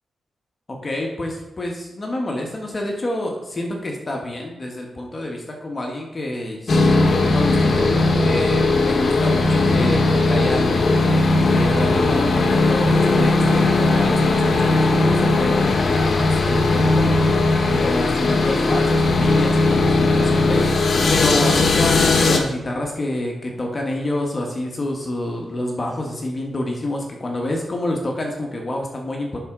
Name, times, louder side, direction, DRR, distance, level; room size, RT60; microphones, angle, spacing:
voice 1, 0.7-10.8 11.4-17.1 17.6-20.6 21.1-29.4, left 1 dB, 35° left, 0 dB, 1.3 m, -28 dB
sound 1, 6.7-22.4, left 3 dB, 60° left, 1.0 m, -18 dB
10.5 x 4.3 x 3.8 m, 1.0 s
cardioid pair, 80°, 0 cm